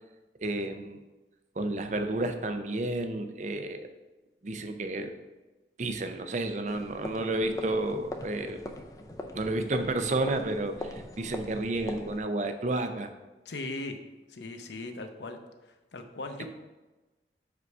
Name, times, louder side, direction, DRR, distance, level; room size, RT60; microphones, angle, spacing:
voice 1, 0.4-1.0 1.6-3.9 4.4-5.1 5.8-8.6 9.3-13.1, right 2 dB, 40° right, 8 dB, 0.5 m, -31 dB
sound 1, 6.7-12.2, left 1 dB, 20° left, 0.5 m, -41 dB
voice 2, 13.4-14.0 14.3-15.4 15.7-16.5, left 2 dB, 75° left, 6 dB, 0.7 m, -38 dB
5.1 x 4.7 x 5.4 m, 1.1 s
head